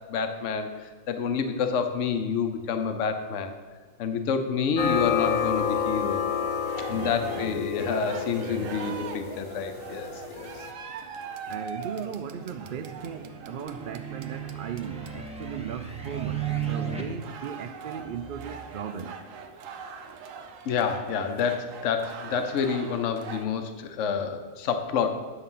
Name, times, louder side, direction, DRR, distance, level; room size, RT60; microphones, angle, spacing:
voice 1, 0.1-3.5 4.0-6.2 6.9-10.6 20.7-25.1, left 6 dB, 70° left, 7 dB, 1.1 m, -28 dB
sound 1, 4.8-10.7, left 7 dB, 85° left, 1.3 m, -30 dB
sound 2, 6.3-23.4, right 5 dB, 80° right, 1.1 m, -42 dB
voice 2, 6.9-7.8 8.4-8.9 11.5-19.2, right 7 dB, 65° right, 7 dB, 0.5 m, -37 dB
sound 3, 12.1-17.0, right 9 dB, 5° right, 0.9 m, -35 dB
9.6 x 7.0 x 5.6 m, 1.5 s
omnidirectional pair, 1.4 m